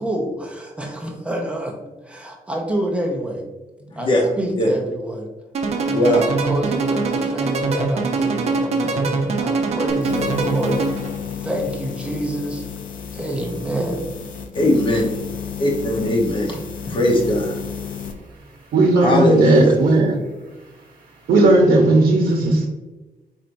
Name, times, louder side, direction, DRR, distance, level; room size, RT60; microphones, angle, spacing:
voice 1, 0.0-1.8 2.0-3.5 3.9-4.1 4.4-5.3 5.8-12.6 13.1-14.3, right 1 dB, 10° right, -1 dB, 0.6 m, -27 dB
voice 2, 3.9-4.2 4.6-4.7 5.9-6.3 14.5-15.1 15.6-16.6 16.9-17.5 19.0-19.7, left 1 dB, 35° left, 1 dB, 0.9 m, -19 dB
sound 1, 5.5-11.2, right 3 dB, 50° right, 0.7 m, -23 dB
sound 2, 9.9-18.2, left 7 dB, 65° left, 0.5 m, -32 dB
voice 3, 18.7-20.1 21.3-22.7, right 2 dB, 80° right, 0 dB, 0.7 m, -15 dB
4.3 x 4.3 x 2.6 m, 1.1 s
wide cardioid pair, 170°, 15 cm